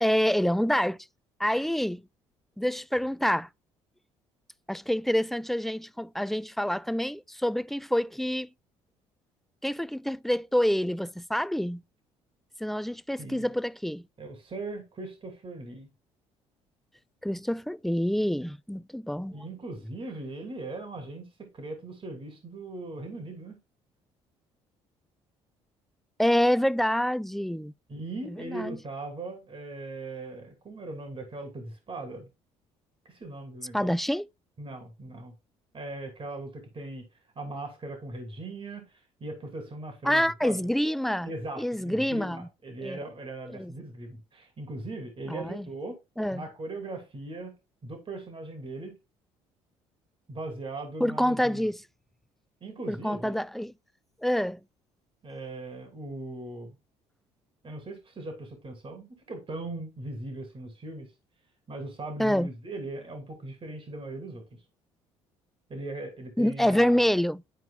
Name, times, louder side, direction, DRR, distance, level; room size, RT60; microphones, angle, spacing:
voice 1, 0.0-1.0 1.4-2.0 2.6-3.5 4.7-8.5 9.6-11.8 12.6-14.0 17.2-19.3 26.2-27.7 28.3-28.8 33.7-34.3 40.0-41.3 41.6-42.5 42.8-43.0 43.5-43.7 45.3-45.7 46.2-46.4 51.0-51.8 52.9-53.7 54.2-54.6 62.2-62.5 66.4-67.4, equal, ahead, 0.4 m, -27 dB
voice 2, 14.2-15.9 19.3-23.6 27.9-32.3 33.0-33.9 34.6-35.3 35.7-37.1 37.4-40.7 41.2-46.0 46.3-47.5 47.8-49.0 50.3-51.7 52.6-53.4 55.2-56.7 57.6-61.1 61.7-64.4 65.7-67.1, right 2 dB, 40° right, 2.7 m, -39 dB
11.5 x 4.5 x 2.3 m
hypercardioid pair, 60°, 14 cm